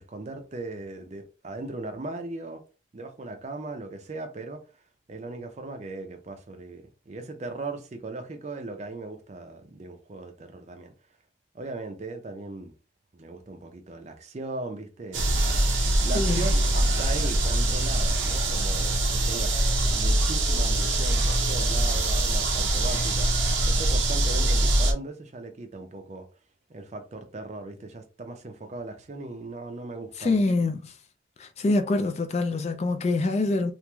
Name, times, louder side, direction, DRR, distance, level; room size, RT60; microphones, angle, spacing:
voice 1, 0.0-2.6 2.9-4.6 5.1-10.9 11.5-12.7 13.1-15.5 15.9-26.3 26.7-30.4, right 2 dB, 35° right, 0.5 m, -38 dB
sound 1, 15.1-24.9, right 1 dB, 80° right, 0.6 m, -23 dB
voice 2, 16.1-16.5 30.2-30.9 31.4-33.7, left 2 dB, 35° left, 0.3 m, -25 dB
3.0 x 2.5 x 2.2 m
head